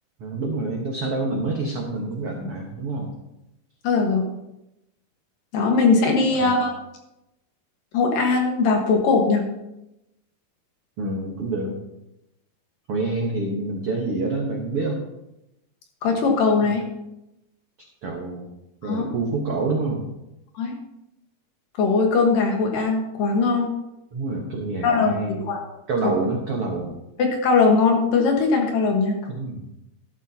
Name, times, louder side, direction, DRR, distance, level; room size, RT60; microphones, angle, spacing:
voice 1, 0.2-3.1 6.4-6.5 11.0-11.8 12.9-15.0 16.6-16.7 18.0-18.5 18.8-20.0 24.1-25.4 25.9-27.0 29.3-29.6, right 3 dB, 70° right, -1 dB, 1.4 m, -27 dB
voice 2, 3.8-4.3 5.5-6.7 7.9-9.4 16.0-16.8 18.8-19.1 20.5-20.8 21.8-23.7 24.8-25.6 27.2-29.2, left 4 dB, 65° left, 1 dB, 2.9 m, -20 dB
13.0 x 12.5 x 2.9 m, 0.89 s
omnidirectional pair, 4.8 m